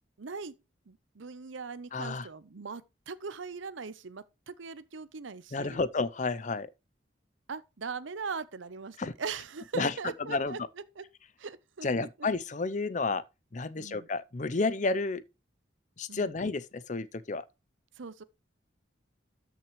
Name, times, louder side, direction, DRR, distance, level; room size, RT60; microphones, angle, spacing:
voice 1, 0.2-0.6 0.9-5.8 7.5-10.6 11.0-11.1 11.4-12.1 13.8-14.1 16.1-16.3 18.0-18.2, right 5 dB, 85° right, 0.7 m, -40 dB
voice 2, 1.9-2.3 5.5-6.7 9.0-9.1 9.8-9.9 10.3-10.6 11.8-13.2 13.5-15.2 16.0-17.4, left 3 dB, 40° left, 0.6 m, -31 dB
13.0 x 6.0 x 3.1 m
head